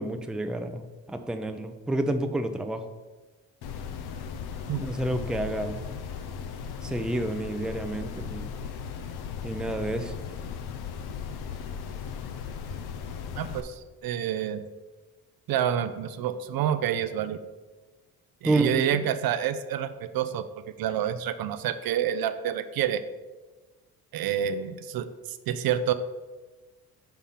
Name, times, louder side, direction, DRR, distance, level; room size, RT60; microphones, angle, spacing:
voice 1, 0.0-2.8 4.8-5.8 6.8-8.5 9.4-10.1 18.4-19.1, right 1 dB, ahead, 6 dB, 0.5 m, -29 dB
sound 1, 3.6-13.6, left 7 dB, 75° left, 0.7 m, -37 dB
voice 2, 13.4-14.6 15.5-17.4 18.4-20.4 20.8-23.0 24.1-25.9, right 9 dB, 65° right, 11 dB, 0.5 m, -28 dB
5.6 x 3.5 x 5.7 m, 1.2 s
cardioid pair, 75°, 38 cm